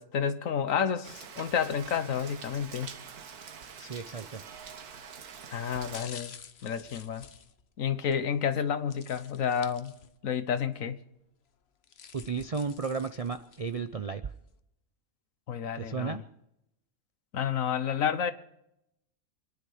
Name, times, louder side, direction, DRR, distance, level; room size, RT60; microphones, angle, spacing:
voice 1, 0.0-2.9 5.5-6.3 6.6-7.2 7.8-9.9 10.2-11.0 15.5-16.2 17.3-18.3, left 7 dB, 65° left, 1.4 m, -30 dB
Rain, 1.0-6.0, right 6 dB, 90° right, 1.7 m, -45 dB
voice 2, 3.8-4.5 12.1-14.3 15.7-16.2, right 5 dB, 50° right, 0.4 m, -34 dB
sound 1, 4.7-5.0 5.7-8.2 8.9-10.4 10.7-10.8 11.6-13.8 14.3-14.4, left 7 dB, 50° left, 1.0 m, -50 dB
26.5 x 10.5 x 5.0 m
omnidirectional pair, 1.5 m